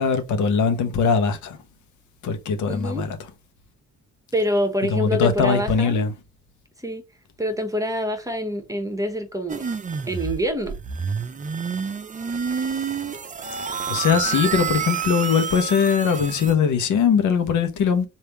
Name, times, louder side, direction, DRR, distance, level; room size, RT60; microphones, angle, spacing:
voice 1, 0.0-1.6 2.2-3.2 4.9-6.1 13.9-18.1, left 6 dB, 75° left, 1.0 m, -21 dB
voice 2, 2.7-3.0 4.3-6.1 6.8-7.0 7.4-9.6 10.1-10.7, equal, 10° right, 1.1 m, -26 dB
sound 1, 9.5-16.5, right 6 dB, 25° right, 0.6 m, -28 dB
3.4 x 2.7 x 4.3 m
cardioid pair, 90°, 30 cm